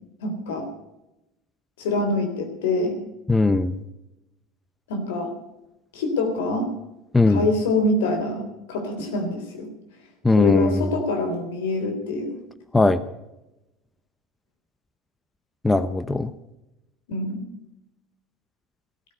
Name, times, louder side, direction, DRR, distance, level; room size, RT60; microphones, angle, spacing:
voice 1, 0.2-0.7 1.8-3.0 4.9-5.3 5.9-6.7 7.3-8.4 8.7-9.7 10.4-12.4 17.1-17.4, left 2 dB, 80° left, 5 dB, 3.5 m, -25 dB
voice 2, 3.3-3.7 7.1-7.5 10.2-10.9 12.7-13.0 15.6-16.3, left 2 dB, 10° left, 13 dB, 0.9 m, -19 dB
15.0 x 14.0 x 5.3 m, 0.93 s
hypercardioid pair, 80°, 0 cm